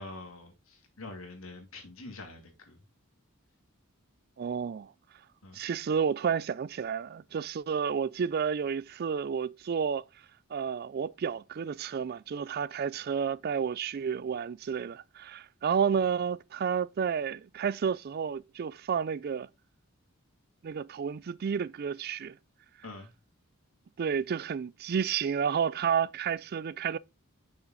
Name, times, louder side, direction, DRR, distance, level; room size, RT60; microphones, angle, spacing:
voice 1, 0.0-2.8 5.4-5.6 22.8-23.1, left 2 dB, 75° left, 2.5 m, -45 dB
voice 2, 4.4-4.9 5.5-10.1 10.5-19.5 20.6-22.4 24.0-27.0, right 7 dB, 45° right, 0.3 m, -31 dB
6.3 x 6.1 x 3.8 m
head